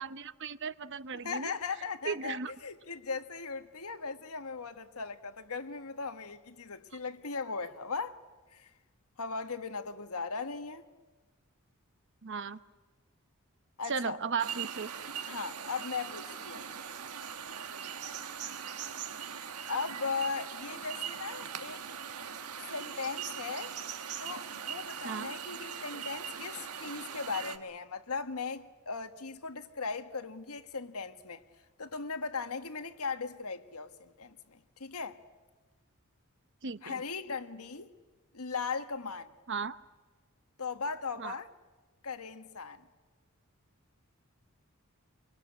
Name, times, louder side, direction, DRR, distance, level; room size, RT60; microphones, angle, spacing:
voice 1, 0.0-1.5 2.0-2.5 12.2-12.6 13.9-14.9 25.0-25.3 36.6-37.0 39.5-39.8 41.2-41.4, right 5 dB, 55° right, 0.8 m, -36 dB
voice 2, 1.2-8.2 8.5-8.7 9.2-10.9 13.8-14.2 15.3-16.7 19.7-21.8 22.7-23.7 24.2-31.4 31.8-35.2 36.8-37.9 38.3-39.3 40.6-41.5 42.0-42.8, left 4 dB, 80° left, 1.4 m, -38 dB
sound 1, 14.4-27.6, right 8 dB, 85° right, 1.5 m, -41 dB
25.0 x 24.0 x 8.5 m
head